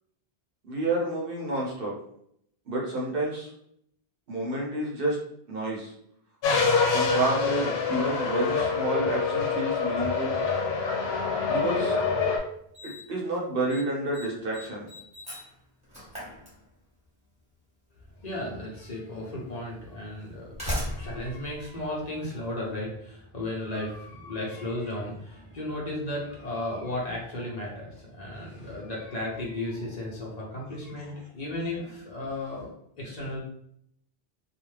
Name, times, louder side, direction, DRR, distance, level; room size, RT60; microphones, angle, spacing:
voice 1, 0.7-1.9 2.7-3.5 4.3-5.2 5.5-5.9 6.9-10.4 11.5-12.0 12.8-14.9, right 2 dB, 65° right, -3 dB, 0.9 m, -29 dB
sound 1, 6.4-12.4, left 5 dB, 85° left, 0.9 m, -26 dB
Slam, 11.9-12.0 12.7-13.2 13.5-13.8 14.1-17.1 18.2-18.3 19.2-19.3 20.2-22.6, equal, 5° right, 1.1 m, -37 dB
voice 2, 18.2-32.7 33.0-33.4, left 1 dB, 45° left, -4 dB, 0.7 m, -35 dB
2.4 x 2.1 x 3.2 m, 0.72 s
omnidirectional pair, 1.0 m